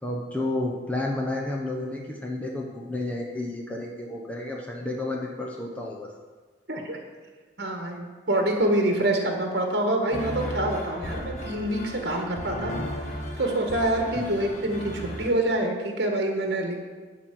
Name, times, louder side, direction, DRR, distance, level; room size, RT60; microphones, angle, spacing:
voice 1, 0.0-6.1 14.2-14.3, left 2 dB, 5° left, -1 dB, 0.8 m, -31 dB
voice 2, 6.7-7.0 7.6-12.7 13.4-16.8, right 1 dB, 55° right, 2 dB, 1.5 m, -26 dB
sound 1, 10.1-15.3, equal, 40° left, 1.3 m, -35 dB
12.5 x 4.3 x 7.6 m, 1.4 s
head